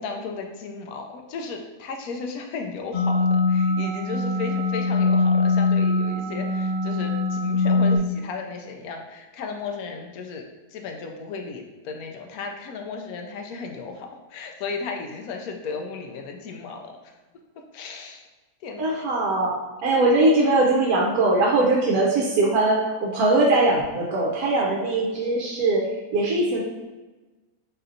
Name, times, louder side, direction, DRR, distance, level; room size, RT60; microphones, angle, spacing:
voice 1, 0.0-10.4 10.7-17.0 17.7-18.2 18.6-19.0 20.0-20.1, left 4 dB, 70° left, 3 dB, 1.0 m, -35 dB
sound 1, 2.9-8.0, left 3 dB, 35° left, 1.0 m, -22 dB
voice 2, 18.8-19.5 19.8-26.6, right 2 dB, 70° right, -3 dB, 1.1 m, -21 dB
4.1 x 3.8 x 2.6 m, 1.2 s
omnidirectional pair, 1.8 m